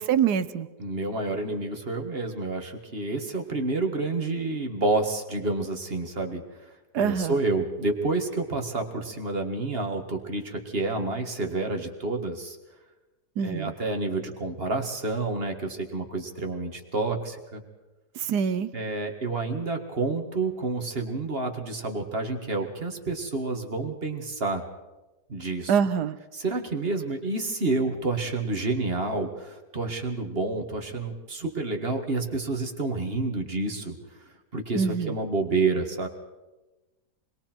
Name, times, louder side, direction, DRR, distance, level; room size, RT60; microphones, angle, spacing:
voice 1, 0.0-0.7 6.9-7.4 13.4-13.7 18.2-18.7 25.7-26.2 34.7-35.2, right 7 dB, 75° right, 13 dB, 1.4 m, -25 dB
voice 2, 0.8-6.7 7.0-12.6 13.4-17.6 18.7-24.6 25.3-25.7 26.3-34.0 34.5-36.1, right 3 dB, 35° right, 4 dB, 2.0 m, -29 dB
27.5 x 21.5 x 4.5 m, 1.1 s
omnidirectional pair, 1.8 m